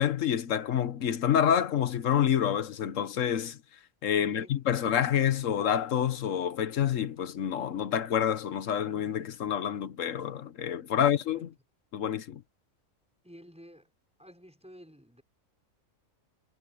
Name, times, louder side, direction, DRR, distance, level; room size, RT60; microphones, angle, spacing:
voice 1, 0.0-3.6 4.0-11.5 11.9-12.4, left 9 dB, 70° left, 1.4 m, -28 dB
voice 2, 4.2-4.6 10.9-11.4 13.2-13.9 14.2-15.2, equal, 5° right, 5.7 m, -52 dB
omnidirectional pair, 1.4 m